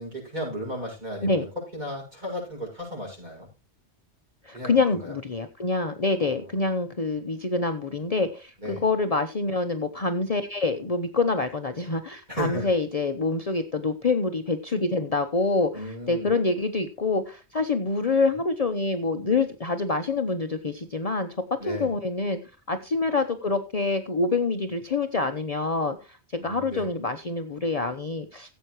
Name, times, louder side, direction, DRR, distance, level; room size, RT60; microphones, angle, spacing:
voice 1, 0.0-1.5 1.7-3.5 4.5-5.1 6.2-6.5 8.6-8.8 12.3-12.7 15.7-16.3 21.6-21.9 26.4-26.9, equal, 40° right, -2 dB, 7.0 m, -35 dB
voice 2, 4.4-22.4 22.7-26.2 26.4-28.5, left 3 dB, 35° left, 6 dB, 0.8 m, -26 dB
16.0 x 8.1 x 3.1 m, 0.31 s
omnidirectional pair, 1.1 m